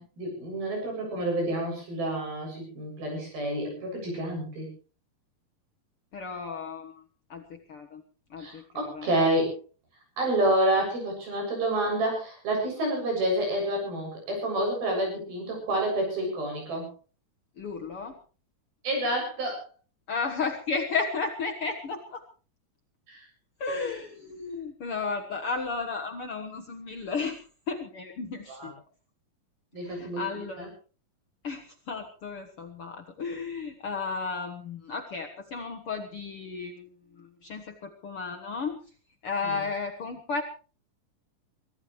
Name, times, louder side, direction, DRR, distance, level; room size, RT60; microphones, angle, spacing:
voice 1, 0.0-4.7 8.4-9.6 10.2-16.9 18.8-19.6 23.1-23.2 28.5-28.7 29.7-30.7 39.4-39.6, right 1 dB, 80° right, 1 dB, 9.3 m, -29 dB
voice 2, 6.1-6.9 7.3-8.0 8.3-9.1 17.6-18.2 20.1-22.2 23.6-27.4 27.7-28.7 29.8-30.7 31.4-36.9 37.2-38.8 39.2-40.4, left 4 dB, 55° left, 3 dB, 1.6 m, -33 dB
24.0 x 15.5 x 3.2 m, 0.37 s
omnidirectional pair, 4.2 m